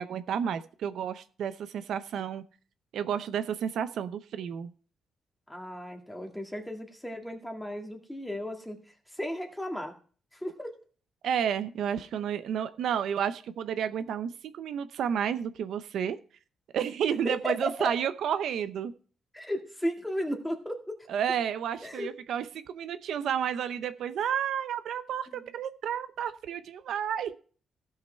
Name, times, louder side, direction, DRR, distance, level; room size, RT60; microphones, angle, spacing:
voice 1, 0.0-2.4 2.9-4.7 11.2-16.2 16.7-18.9 21.1-27.3, right 8 dB, 70° right, 11 dB, 0.7 m, -31 dB
voice 2, 5.5-8.8 9.1-9.9 10.3-10.7 17.2-17.5 17.8-17.9 19.3-20.9 21.8-22.1 25.3-25.4, equal, 5° left, 3 dB, 2.0 m, -35 dB
16.0 x 5.8 x 4.4 m, 0.41 s
cardioid pair, 155°, 0 cm